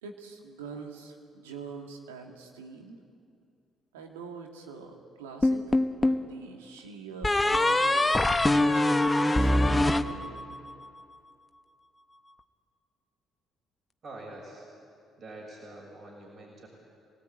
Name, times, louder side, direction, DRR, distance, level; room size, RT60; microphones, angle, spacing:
voice 1, 0.0-3.0 3.9-10.6, right 5 dB, 85° right, 2 dB, 2.2 m, -44 dB
sound 1, 5.4-6.3 7.2-10.7, left 1 dB, 20° left, 1.2 m, -24 dB
voice 2, 14.0-14.7 15.2-16.7, right 2 dB, 50° right, -2 dB, 6.4 m, -45 dB
26.0 x 18.5 x 9.1 m, 2.4 s
hypercardioid pair, 50°, 0 cm